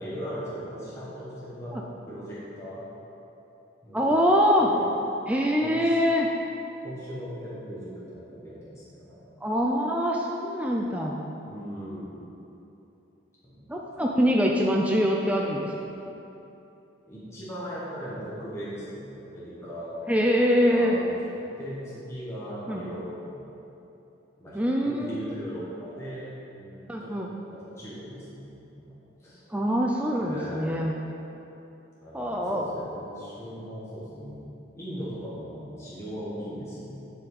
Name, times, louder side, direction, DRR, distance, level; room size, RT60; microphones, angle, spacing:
voice 1, 0.0-1.7 2.1-2.8 3.8-4.1 4.6-4.8 5.6-6.0 6.8-9.2 11.5-12.2 13.4-13.7 17.1-20.2 20.7-21.1 21.4-23.4 24.4-27.1 27.5-28.9 29.2-29.4 30.2-30.8 32.0-34.5 34.7-37.0, equal, 15° left, -10 dB, 1.5 m, -38 dB
voice 2, 3.9-4.7 5.3-6.3 9.4-11.1 13.7-15.7 20.1-21.0 22.7-22.8 24.5-25.1 26.9-27.3 29.5-30.9 32.1-32.6, equal, 5° right, -1 dB, 0.4 m, -24 dB
10.0 x 5.5 x 4.1 m, 2.9 s
head